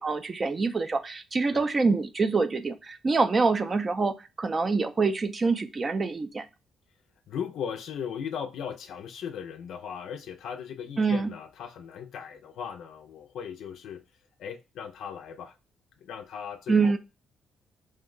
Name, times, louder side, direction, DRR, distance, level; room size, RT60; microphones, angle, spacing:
voice 1, 0.0-6.5 11.0-11.3 16.7-17.0, right 4 dB, 35° right, 0.4 m, -25 dB
voice 2, 7.3-14.0 14.4-15.6 16.0-17.0, left 7 dB, 80° left, 0.4 m, -37 dB
2.7 x 2.1 x 3.7 m
cardioid pair, 90°, 0 cm